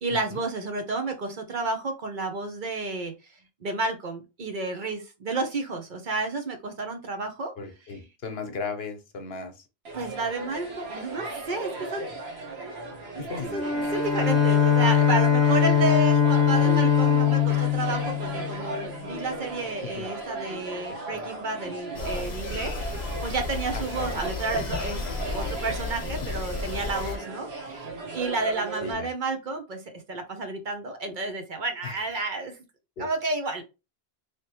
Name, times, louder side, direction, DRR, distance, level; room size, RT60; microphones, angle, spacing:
voice 1, 0.0-3.3 3.6-7.5 9.9-12.1 13.1-13.2 13.5-29.8 30.1-32.6 33.0-33.6, right 3 dB, 55° right, 5 dB, 0.9 m, -31 dB
voice 2, 7.6-9.5 13.2-13.5 19.8-20.1 23.7-24.1 25.0-25.3 28.8-29.1 31.8-32.0 33.0-33.1, left 4 dB, 70° left, 7 dB, 1.0 m, -36 dB
sound 1, 9.8-28.9, right 2 dB, 75° right, 1.3 m, -36 dB
Bowed string instrument, 13.4-19.0, left 8 dB, ahead, 1.1 m, -22 dB
sound 2, 21.9-27.2, left 3 dB, 45° left, 0.9 m, -33 dB
3.3 x 2.9 x 2.9 m, 0.27 s
omnidirectional pair, 1.1 m